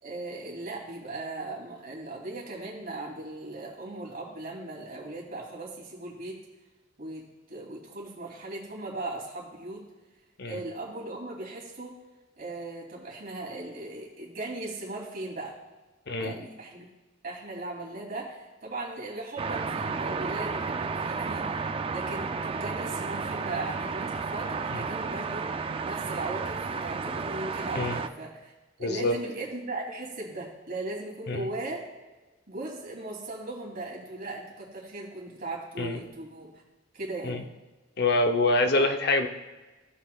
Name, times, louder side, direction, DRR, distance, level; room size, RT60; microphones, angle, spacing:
voice 1, 0.0-6.4 7.0-9.8 10.4-12.0 12.4-15.5 16.2-16.9 17.2-25.5 25.8-28.5 28.8-31.9 32.5-36.6 36.9-37.5, right 2 dB, 50° right, -3 dB, 2.7 m, -38 dB
sound 1, 19.4-28.1, right 4 dB, 30° right, 0.3 m, -32 dB
voice 2, 28.8-29.2 31.3-31.5 35.8-36.0 37.2-37.4 38.0-39.3, left 2 dB, 55° left, 6 dB, 0.7 m, -25 dB
16.5 x 5.8 x 2.3 m, 1.2 s
head